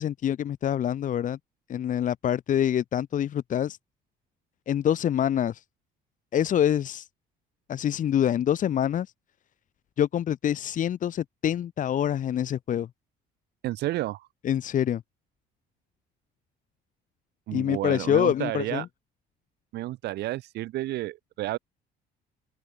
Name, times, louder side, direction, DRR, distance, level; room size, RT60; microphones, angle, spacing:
voice 1, 0.0-1.4 1.7-3.8 4.7-5.6 6.3-7.1 7.7-9.1 10.0-12.9 14.4-15.0 17.5-18.8, left 10 dB, 50° left, 1.3 m, -26 dB
voice 2, 13.6-14.3 17.5-18.9 19.7-21.6, right 16 dB, 80° right, 6.9 m, -31 dB
open air
cardioid pair, 110°, 17 cm